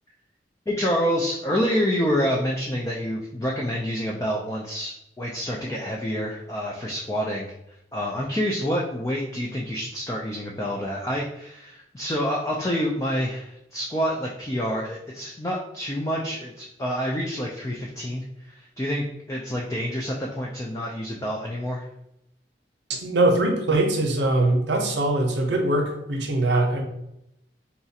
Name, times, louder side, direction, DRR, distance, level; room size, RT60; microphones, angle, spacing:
voice 1, 0.7-7.5 7.9-21.9, equal, 20° left, -2 dB, 0.3 m, -27 dB
voice 2, 22.9-26.8, right 2 dB, 80° right, 3 dB, 0.7 m, -22 dB
4.0 x 2.4 x 2.7 m, 0.80 s
head